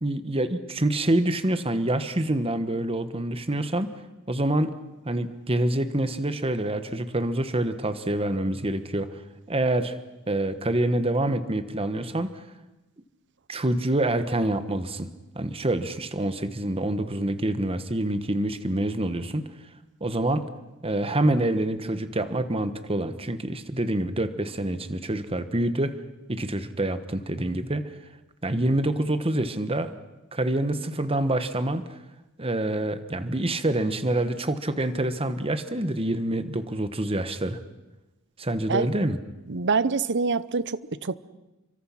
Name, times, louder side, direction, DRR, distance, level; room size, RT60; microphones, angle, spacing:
voice 1, 0.0-3.9 4.3-4.7 5.0-9.1 9.5-10.0 10.3-12.4 13.5-15.1 15.3-19.5 20.0-20.5 20.8-26.0 26.3-27.8 28.4-29.9 30.3-31.8 32.4-37.6 38.4-39.2, right 1 dB, 25° right, 11 dB, 1.3 m, -26 dB
voice 2, 39.5-41.2, right 4 dB, 55° right, 16 dB, 0.8 m, -25 dB
30.0 x 24.5 x 5.9 m, 1.0 s
head